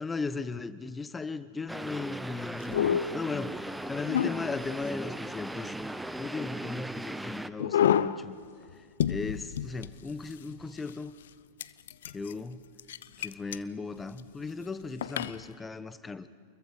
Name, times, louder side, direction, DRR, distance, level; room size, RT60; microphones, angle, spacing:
voice 1, 0.0-5.7 6.2-8.4 9.1-11.1 12.1-12.6 13.2-16.3, left 4 dB, 15° left, 13 dB, 1.1 m, -37 dB
sound 1, 1.7-7.5, right 1 dB, 5° right, 0.8 m, -38 dB
sound 2, 2.6-3.2 4.0-4.8 7.6-8.3 8.7-8.8 9.0-10.5 10.9-11.0 11.6-12.3 12.8-13.6 14.0-14.2 15.0-15.4, left 9 dB, 70° left, 0.7 m, -28 dB
28.5 x 22.0 x 5.1 m, 2.2 s
hypercardioid pair, 95°, 0 cm